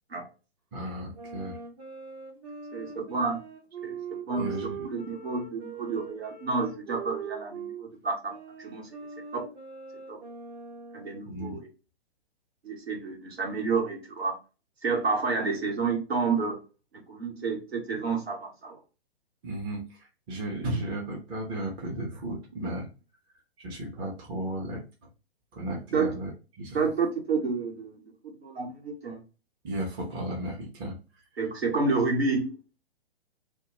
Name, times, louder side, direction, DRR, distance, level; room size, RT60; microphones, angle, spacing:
voice 1, 0.7-1.6 4.3-4.9 11.2-11.6 19.4-22.9 23.6-24.8 25.5-26.3 26.6-26.9 29.6-31.0, right 1 dB, 15° right, -1 dB, 0.5 m, -34 dB
sound 1, 1.1-7.9 8.3-11.3, right 6 dB, 35° right, 0.8 m, -41 dB
voice 2, 2.7-3.4 3.8-4.0 4.2-4.5 4.8-8.9 9.3-9.4 10.1-10.2 10.9-11.7 12.6-14.4 14.8-16.6 17.1-18.8 25.9-26.1 26.7-28.0 28.4-29.2 31.4-32.6, right 4 dB, 75° right, 0 dB, 1.1 m, -29 dB
2.2 x 2.1 x 2.9 m, 0.33 s
figure-of-eight pair, 120°, 31 cm